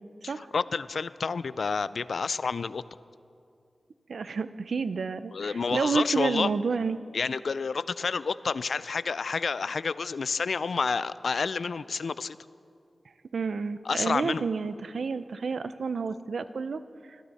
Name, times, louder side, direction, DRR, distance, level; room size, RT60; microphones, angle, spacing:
voice 1, 0.2-2.8 5.3-6.5 7.1-12.4 13.9-14.4, left 5 dB, 80° left, 17 dB, 0.3 m, -29 dB
voice 2, 4.1-7.0 13.3-16.8, right 5 dB, 85° right, 13 dB, 0.5 m, -30 dB
21.5 x 13.0 x 4.2 m, 2.4 s
cardioid pair, 50°, 0 cm